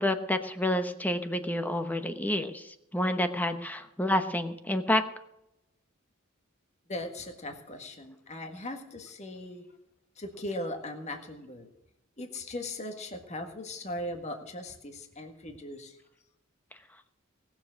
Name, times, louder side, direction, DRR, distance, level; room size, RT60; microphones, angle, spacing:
voice 1, 0.0-5.0, left 1 dB, 10° left, 8 dB, 1.0 m, -29 dB
voice 2, 6.9-9.7 10.1-11.7 12.2-16.0, left 1 dB, 35° left, 5 dB, 1.7 m, -39 dB
19.0 x 7.3 x 6.4 m, 0.86 s
head